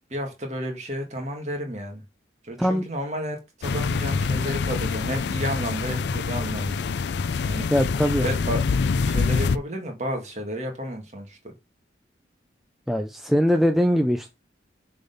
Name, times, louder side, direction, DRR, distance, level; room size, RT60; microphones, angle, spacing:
voice 1, 0.1-2.0 2.4-6.9 7.5-7.7 8.2-8.6 9.1-11.4, equal, 35° right, 1.9 m, -31 dB
sound 1, 3.6-9.6, left 4 dB, 65° left, 0.4 m, -25 dB
voice 2, 7.7-8.3 12.9-14.3, equal, ahead, 0.4 m, -21 dB
6.8 x 3.9 x 5.4 m
head